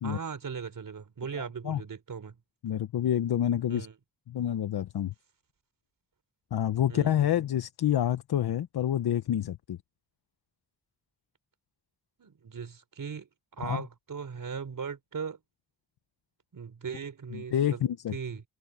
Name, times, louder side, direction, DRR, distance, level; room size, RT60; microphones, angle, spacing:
voice 1, 0.0-2.4 3.7-3.9 6.9-7.3 12.2-13.3 13.5-15.4 16.5-17.8 18.1-18.4, right 6 dB, 60° right, 4.3 m, -38 dB
voice 2, 2.6-3.9 4.3-5.1 6.5-9.8 13.6-13.8 17.3-18.1, left 10 dB, 90° left, 0.8 m, -28 dB
wide cardioid pair, 125°, 37 cm